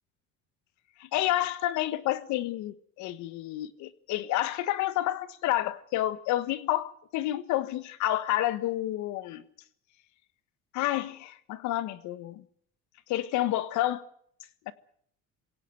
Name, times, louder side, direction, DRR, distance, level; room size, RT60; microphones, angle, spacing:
voice 1, 1.0-9.4 10.7-12.4 13.1-14.0 14.7-14.8, left 14 dB, 75° left, 1.5 m, -29 dB
21.5 x 17.0 x 7.8 m
cardioid pair, 110°, 29 cm